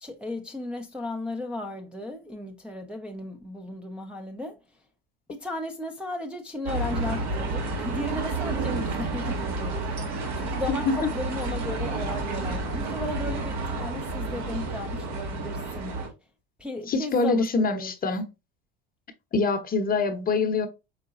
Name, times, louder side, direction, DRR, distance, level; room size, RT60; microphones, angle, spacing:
voice 1, 0.0-4.6 5.3-10.0 10.4-15.9 16.6-17.9, left 2 dB, 5° right, 0.6 m, -35 dB
sound 1, 6.7-16.1, right 3 dB, 60° right, 1.6 m, -30 dB
voice 2, 16.9-18.3 19.3-20.7, left 4 dB, 30° left, 0.9 m, -24 dB
4.9 x 3.7 x 2.5 m
hypercardioid pair, 90°, 30 cm